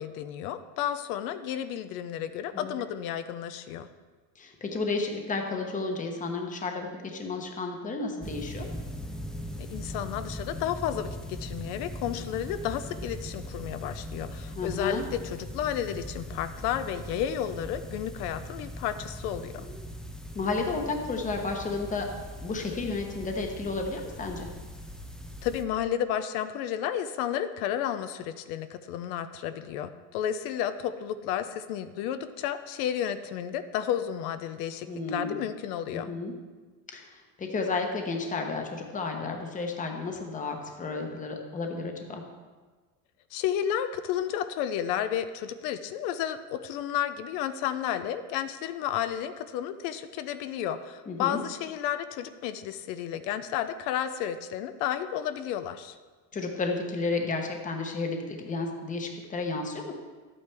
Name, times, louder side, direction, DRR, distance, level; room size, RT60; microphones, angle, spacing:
voice 1, 0.0-3.9 9.7-19.7 25.4-36.1 43.3-56.0, left 10 dB, 85° left, 11 dB, 0.7 m, -32 dB
voice 2, 4.4-8.7 14.6-15.0 20.3-22.1 22.4-24.5 34.9-35.4 35.9-36.4 36.9-42.2 51.1-51.4 56.3-59.9, left 3 dB, 20° left, 3 dB, 1.0 m, -32 dB
sound 1, 8.2-25.6, equal, ahead, 0.3 m, -40 dB
11.0 x 8.6 x 3.4 m, 1.4 s
cardioid pair, 150°, 43 cm